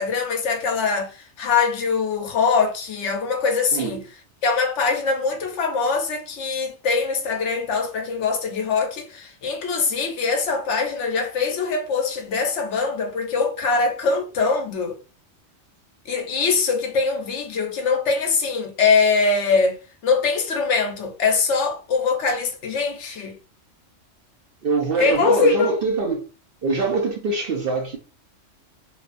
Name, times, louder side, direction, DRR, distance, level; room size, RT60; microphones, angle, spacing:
voice 1, 0.0-4.0 4.4-15.0 16.1-19.8 20.0-23.4 25.0-25.7, left 4 dB, 70° left, 0.9 m, -22 dB
voice 2, 24.6-26.2 26.6-28.0, right 3 dB, 60° right, 0.6 m, -23 dB
2.9 x 2.2 x 2.5 m
omnidirectional pair, 1.3 m